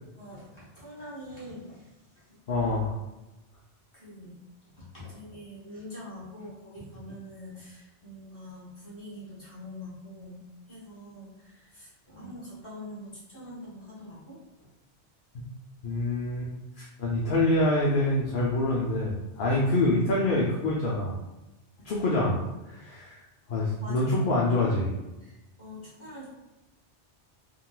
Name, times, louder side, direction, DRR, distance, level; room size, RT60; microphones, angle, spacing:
voice 1, 0.1-2.4 3.9-4.4 4.8-14.4 21.8-22.0 23.7-24.5 25.2-26.2, left 1 dB, 25° left, -8 dB, 1.3 m, -44 dB
voice 2, 2.5-2.9 15.8-16.5 16.8-21.2 21.8-23.2 23.5-24.9, left 2 dB, 60° left, -4 dB, 0.6 m, -26 dB
3.7 x 2.3 x 2.3 m, 1.0 s
omnidirectional pair, 1.2 m